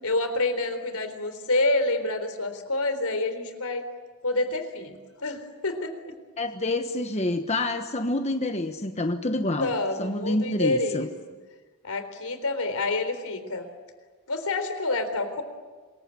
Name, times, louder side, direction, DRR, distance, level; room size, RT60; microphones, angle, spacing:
voice 1, 0.0-3.8 4.2-6.1 9.6-11.1 11.8-13.7 14.3-15.4, left 2 dB, 80° left, 9 dB, 3.9 m, -28 dB
voice 2, 6.4-9.7 10.0-11.1, left 2 dB, 30° left, 6 dB, 1.2 m, -27 dB
26.5 x 22.5 x 9.9 m, 1.4 s
head